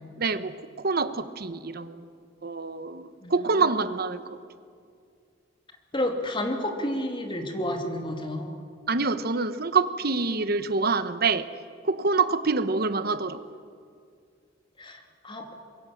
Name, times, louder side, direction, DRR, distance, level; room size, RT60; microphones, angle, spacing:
voice 1, 0.2-2.1 2.4-4.2 8.9-11.5 11.8-13.4, right 4 dB, 50° right, 12 dB, 1.1 m, -26 dB
voice 2, 5.9-8.6 14.8-15.5, left 1 dB, 25° left, 4 dB, 2.7 m, -30 dB
25.0 x 23.0 x 7.3 m, 2.3 s
head